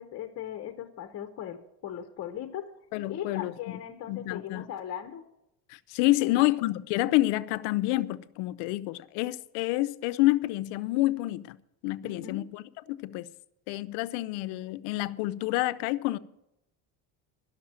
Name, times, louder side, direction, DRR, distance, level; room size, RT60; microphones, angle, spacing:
voice 1, 0.0-2.7 3.1-5.2 6.2-6.5 12.0-12.5, left 10 dB, 40° left, 1.0 m, -38 dB
voice 2, 2.9-3.8 4.1-4.7 5.7-11.6 11.8-13.3 13.7-16.2, left 18 dB, 80° left, 0.7 m, -28 dB
11.5 x 6.6 x 8.8 m
cardioid pair, 130°, 41 cm